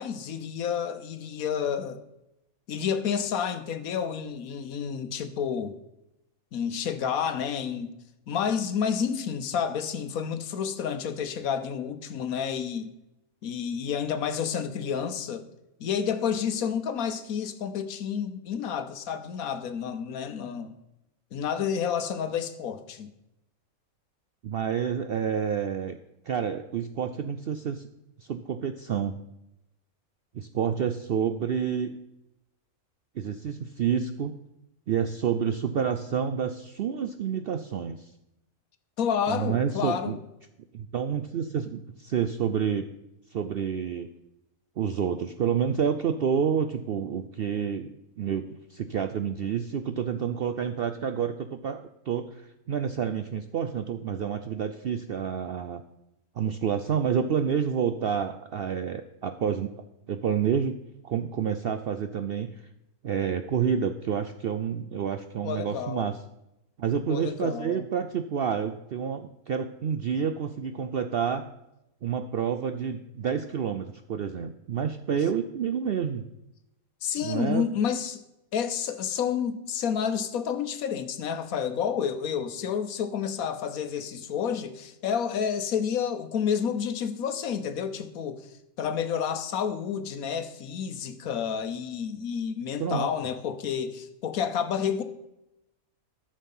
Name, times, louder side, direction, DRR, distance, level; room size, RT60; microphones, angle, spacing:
voice 1, 0.0-2.0 2.7-5.7 6.5-7.9 8.3-12.9 13.4-15.4 15.8-20.7 21.3-23.1 39.0-40.2 65.4-66.1 67.1-67.9 77.0-78.2 78.5-88.5 88.8-95.0, left 7 dB, 75° left, 10 dB, 1.3 m, -30 dB
voice 2, 24.4-26.0 26.3-27.8 28.2-29.2 30.3-32.0 33.2-34.4 34.9-38.1 39.3-40.2 40.7-42.9 43.3-44.1 44.8-48.4 48.7-55.8 56.4-59.7 60.1-60.8 61.0-62.6 63.0-66.1 66.8-71.5 72.0-76.2 77.2-77.7 92.8-93.1, right 7 dB, 65° right, 9 dB, 0.5 m, -29 dB
13.0 x 6.5 x 5.5 m, 0.87 s
omnidirectional pair, 1.5 m